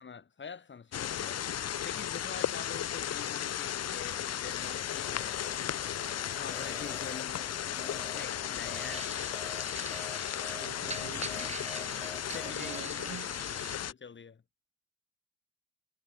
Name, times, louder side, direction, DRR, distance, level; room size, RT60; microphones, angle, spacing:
voice 1, 0.0-1.5 1.8-5.6 6.4-9.5 9.7-9.9 11.3-11.5 12.3-13.2 13.5-14.4, left 6 dB, 40° left, 3.8 m, -46 dB
sound 1, 0.9-13.9, left 10 dB, 55° left, 1.3 m, -35 dB
sound 2, 3.8-12.9, left 2 dB, 10° left, 1.6 m, -49 dB
sound 3, 8.7-13.8, right 4 dB, 20° right, 1.8 m, -45 dB
voice 2, 10.5-11.3 12.5-13.3, right 14 dB, 70° right, 0.9 m, -46 dB
cardioid pair, 90°, 30 cm